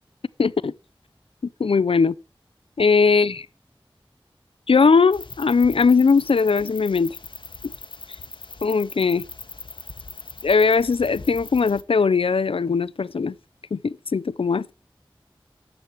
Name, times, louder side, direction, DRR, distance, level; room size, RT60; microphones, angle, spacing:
voice 1, 0.4-0.7 1.6-2.1 2.8-3.5 4.7-7.2 7.6-7.7 8.6-9.2 10.4-13.3 13.7-14.7, left 5 dB, 85° left, 0.4 m, -19 dB
sound 1, 5.1-11.8, left 3 dB, 65° left, 0.9 m, -40 dB
12.5 x 8.3 x 4.5 m
wide cardioid pair, 45°, 9 cm